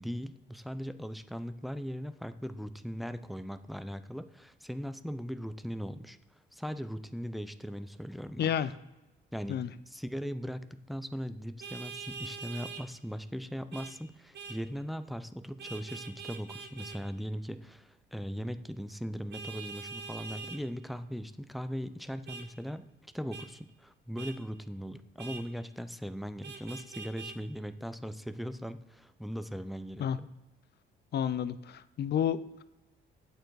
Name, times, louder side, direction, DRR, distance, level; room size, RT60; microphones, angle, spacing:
voice 1, 0.0-8.8 9.3-22.9 23.1-30.3, equal, ahead, 11 dB, 0.5 m, -39 dB
voice 2, 8.4-8.7 9.5-9.7 30.0-30.2 31.1-32.4, left 9 dB, 55° left, 15 dB, 0.5 m, -30 dB
Vehicle horn car horn honking, 11.6-12.8 13.7-13.9 14.3-14.6 15.6-17.0 19.3-20.6 22.3-22.5 23.3-23.5 24.2-24.4 25.2-25.4 26.4-27.4, right 5 dB, 60° right, 1.1 m, -43 dB
9.1 x 6.6 x 4.7 m, 0.99 s
cardioid pair, 90°, 20 cm